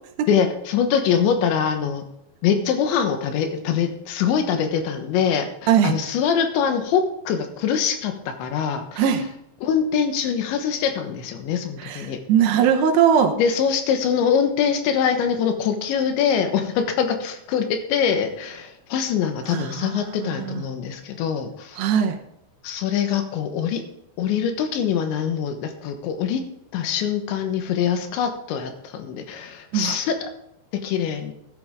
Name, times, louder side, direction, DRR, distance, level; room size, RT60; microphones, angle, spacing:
voice 1, 0.3-2.1 2.4-9.0 9.6-12.2 13.4-21.8 22.6-23.8 24.2-26.4 26.7-30.2 30.8-31.3, left 7 dB, 85° left, 7 dB, 3.5 m, -23 dB
voice 2, 11.8-13.3 19.5-20.6 21.8-22.2 29.7-30.0, right 8 dB, 75° right, 5 dB, 3.0 m, -20 dB
14.0 x 10.5 x 3.6 m, 0.78 s
omnidirectional pair, 5.2 m